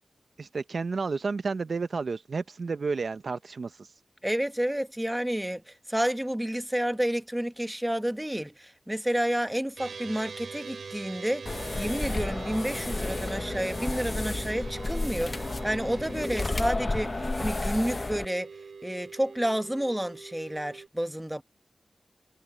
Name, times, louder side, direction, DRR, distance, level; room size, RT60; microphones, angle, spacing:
voice 1, 0.4-3.9, right 4 dB, 65° right, 0.6 m, -31 dB
voice 2, 4.2-11.5 11.8-18.5 18.8-21.4, equal, 10° right, 1.1 m, -30 dB
sound 1, 9.8-20.9, right 5 dB, 85° right, 3.4 m, -43 dB
sound 2, 11.5-18.3, left 2 dB, 35° left, 0.7 m, -32 dB
wide cardioid pair, 95°, 0 cm